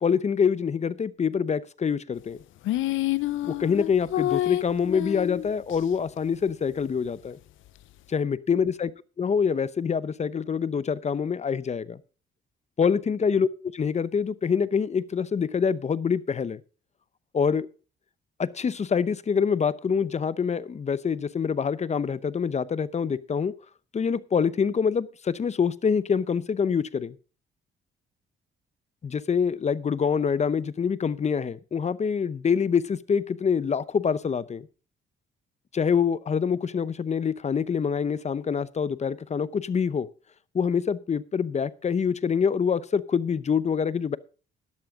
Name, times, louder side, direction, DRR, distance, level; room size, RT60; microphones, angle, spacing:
voice 1, 0.0-2.4 3.4-7.4 8.1-8.9 9.2-12.0 12.8-13.5 13.7-16.6 17.3-17.7 18.4-23.5 23.9-27.2 29.0-34.7 35.7-40.1 40.5-44.2, left 6 dB, 35° left, 17 dB, 0.7 m, -25 dB
sound 1, 2.6-5.8, left 15 dB, 80° left, 0.6 m, -28 dB
12.0 x 11.5 x 3.7 m, 0.36 s
cardioid pair, 90°, 20 cm